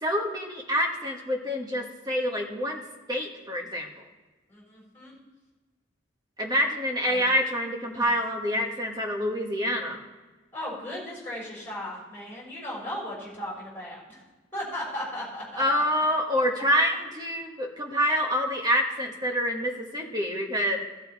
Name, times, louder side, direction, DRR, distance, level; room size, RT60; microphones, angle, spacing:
voice 1, 0.0-2.8 3.1-4.1 6.4-10.0 15.6-20.8, equal, 20° right, 2 dB, 1.2 m, -27 dB
voice 2, 4.5-5.1 7.0-7.2 7.9-8.1 10.5-14.2 14.5-15.8, left 1 dB, 10° left, -5 dB, 4.0 m, -36 dB
13.5 x 7.0 x 4.6 m, 1.2 s
head